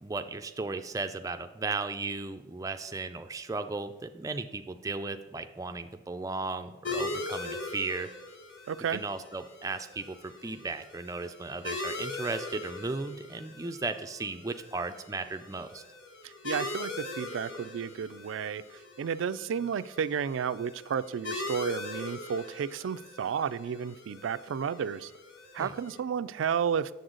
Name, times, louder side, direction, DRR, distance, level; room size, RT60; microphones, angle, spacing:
voice 1, 0.0-8.1 8.9-15.8 25.6-25.7, right 3 dB, 20° right, 0.4 m, -36 dB
sound 1, 6.8-26.0, left 2 dB, 80° left, 1.0 m, -41 dB
voice 2, 8.7-9.0 16.2-25.1 25.5-27.0, right 7 dB, 90° right, 0.3 m, -32 dB
7.8 x 6.9 x 3.8 m
head